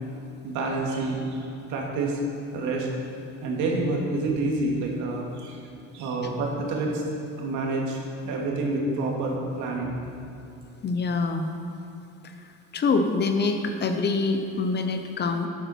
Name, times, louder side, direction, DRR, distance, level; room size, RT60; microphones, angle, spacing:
voice 1, 0.4-2.2 2.5-2.9 3.4-5.6 5.9-7.0 7.4-8.0 8.2-10.0, right 2 dB, 65° right, -1 dB, 2.3 m, -28 dB
voice 2, 10.8-11.5 12.2-12.3 12.7-15.5, left 4 dB, 35° left, 6 dB, 0.8 m, -25 dB
11.5 x 8.4 x 4.5 m, 2.9 s
cardioid pair, 125°, 32 cm